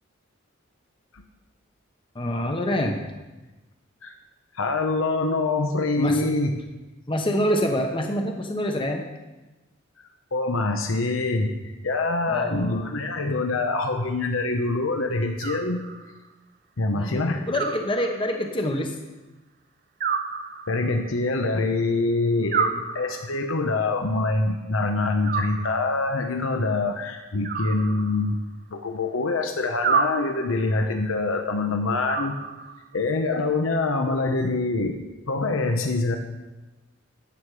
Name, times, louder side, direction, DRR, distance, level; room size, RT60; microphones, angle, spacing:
voice 1, 2.1-3.0 6.0-6.3 7.1-9.0 12.3-12.9 16.9-19.0 22.4-22.8, equal, 25° left, 3 dB, 1.0 m, -26 dB
voice 2, 4.5-6.5 10.3-11.5 11.8-15.8 16.8-17.4 20.7-28.4 28.7-32.4 32.9-35.0 35.3-36.2, left 3 dB, 85° left, 5 dB, 1.0 m, -25 dB
Animal, 15.4-16.3 17.5-18.5 20.0-21.1 22.5-23.5 25.2-26.2 27.4-28.5 29.8-30.7 32.1-33.0, right 6 dB, 45° right, 0.8 m, -30 dB
13.0 x 9.1 x 4.9 m, 1.1 s
head